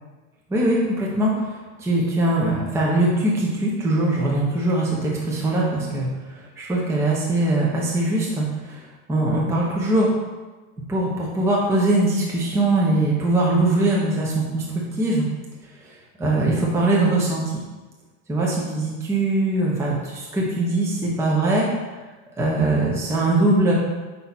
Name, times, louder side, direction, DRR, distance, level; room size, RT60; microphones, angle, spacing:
voice 1, 0.5-10.1 10.9-15.3 15.8-17.4 18.3-21.7 22.4-23.7, right 2 dB, 5° right, -4 dB, 0.7 m, -22 dB
5.7 x 4.1 x 4.1 m, 1.2 s
supercardioid pair, 145°, 43 cm